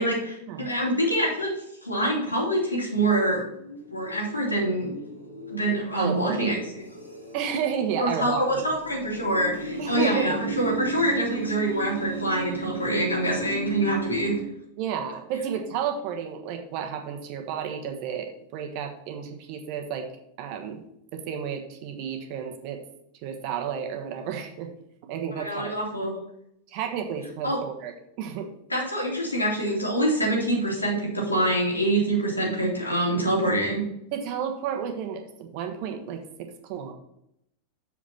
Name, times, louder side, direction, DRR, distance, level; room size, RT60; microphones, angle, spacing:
voice 1, 0.0-1.5 1.8-3.4 3.9-4.9 5.5-6.8 8.0-14.3 25.4-26.2 27.4-27.6 28.7-33.8, right 1 dB, 85° left, -3 dB, 2.9 m, -25 dB
sound 1, 2.8-14.4, right 4 dB, 90° right, 2.0 m, -36 dB
voice 2, 5.9-6.6 7.3-8.6 9.8-10.4 14.8-20.1 20.4-20.8 21.1-22.8 23.2-24.7 25.0-25.8 26.7-27.9 28.2-28.5 34.1-36.9, right 7 dB, 45° right, 4 dB, 1.3 m, -32 dB
7.0 x 5.1 x 5.7 m, 0.77 s
figure-of-eight pair, 90°, 0 cm